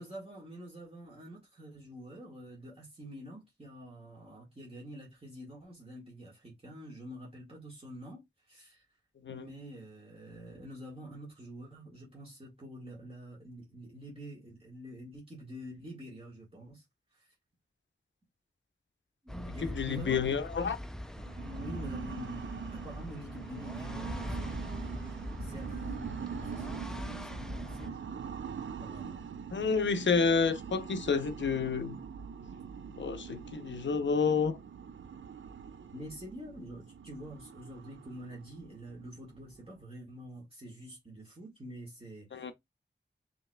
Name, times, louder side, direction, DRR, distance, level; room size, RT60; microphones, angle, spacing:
voice 1, 0.0-8.9 9.3-16.8 17.1-17.3 19.2-20.4 21.4-28.3 28.8-29.2 35.9-42.5, equal, 30° right, 1.6 m, -47 dB
sound 1, 19.3-27.9, equal, 5° left, 0.4 m, -42 dB
voice 2, 19.5-20.8 29.5-32.0 33.0-34.6 42.3-42.5, left 5 dB, 75° left, 0.6 m, -29 dB
sound 2, 21.1-39.8, right 6 dB, 85° right, 0.4 m, -43 dB
5.4 x 2.9 x 2.2 m
wide cardioid pair, 95°, 19 cm